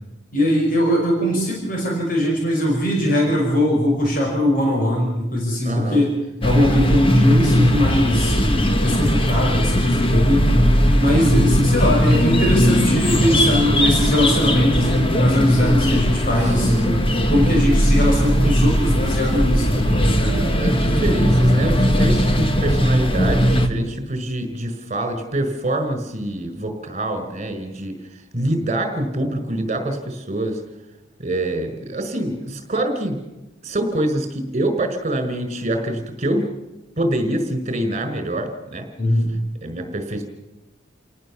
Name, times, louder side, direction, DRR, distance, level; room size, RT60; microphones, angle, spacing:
voice 1, 0.3-6.1 6.4-8.4 8.8-10.5 11.0-16.7 17.1-20.4 39.0-39.3, equal, 45° left, -1 dB, 5.5 m, -20 dB
voice 2, 5.6-6.0 16.4-17.6 20.2-28.0 28.3-30.6 31.2-33.2 33.6-36.5 37.0-38.8 39.6-40.2, right 1 dB, 35° right, 7 dB, 5.0 m, -25 dB
sound 1, 6.4-23.7, equal, 30° left, 1.8 m, -18 dB
29.0 x 18.5 x 7.3 m, 0.97 s
head